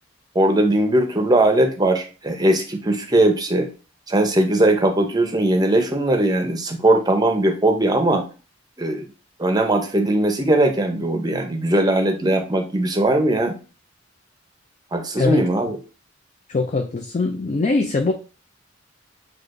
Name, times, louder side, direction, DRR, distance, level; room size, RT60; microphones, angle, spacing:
voice 1, 0.3-3.7 4.1-8.3 8.8-9.1 9.4-13.6 14.9-15.8, right 1 dB, 20° right, 5 dB, 0.6 m, -19 dB
voice 2, 16.5-18.1, left 3 dB, 35° left, 3 dB, 0.4 m, -22 dB
6.2 x 2.4 x 2.5 m, 0.34 s
head